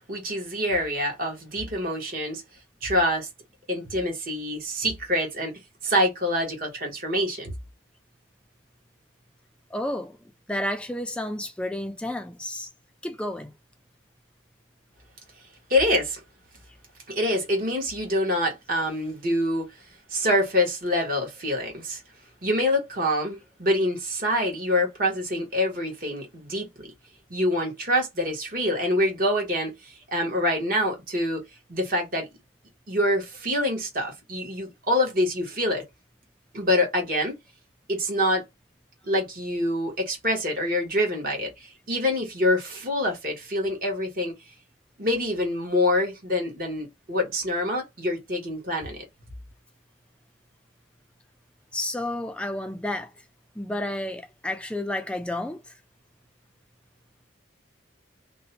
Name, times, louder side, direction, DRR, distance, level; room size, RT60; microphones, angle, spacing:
voice 1, 0.0-2.4 2.8-3.3 3.7-5.5 5.8-7.5 15.7-16.2 17.1-19.6 20.1-22.0 22.4-26.9 27.3-31.4 31.7-32.3 32.9-35.8 36.5-37.4 37.9-38.4 39.1-44.3 45.0-49.0, left 1 dB, 45° right, 1.1 m, -26 dB
voice 2, 9.7-10.2 10.5-12.7 13.0-13.5 51.7-53.1 53.6-55.7, left 1 dB, 5° left, 0.3 m, -31 dB
2.6 x 2.1 x 2.7 m
head